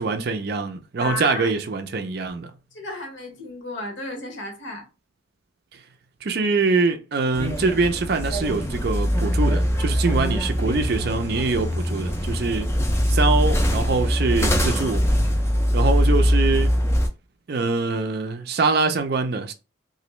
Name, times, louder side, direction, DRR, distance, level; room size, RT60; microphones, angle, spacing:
voice 1, 0.0-2.5 6.2-12.7 13.1-15.0 15.7-16.7 17.5-19.5, right 4 dB, 50° right, 0.4 m, -24 dB
voice 2, 1.0-1.5 2.7-4.9, left 2 dB, 65° left, 1.0 m, -33 dB
sound 1, 7.3-17.1, equal, 15° left, 0.4 m, -22 dB
2.9 x 2.5 x 3.1 m
head